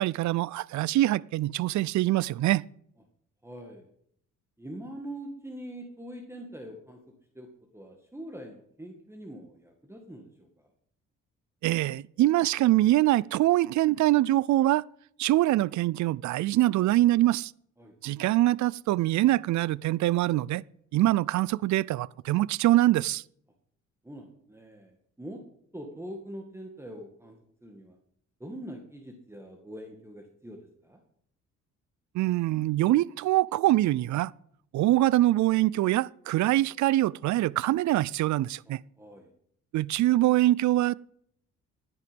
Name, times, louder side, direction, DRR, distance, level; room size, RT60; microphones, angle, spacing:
voice 1, 0.0-2.6 11.6-14.8 15.2-17.5 18.0-20.6 20.9-23.2 32.1-34.3 34.7-38.8 39.7-40.9, right 16 dB, 70° right, 0.5 m, -24 dB
voice 2, 3.4-3.9 4.6-7.0 7.3-10.7 17.8-18.0 24.0-25.4 25.7-27.4 27.6-28.0 28.4-31.0 38.7-39.3, right 1 dB, 10° right, 2.1 m, -43 dB
15.0 x 9.7 x 5.3 m
cardioid pair, 90°, 30 cm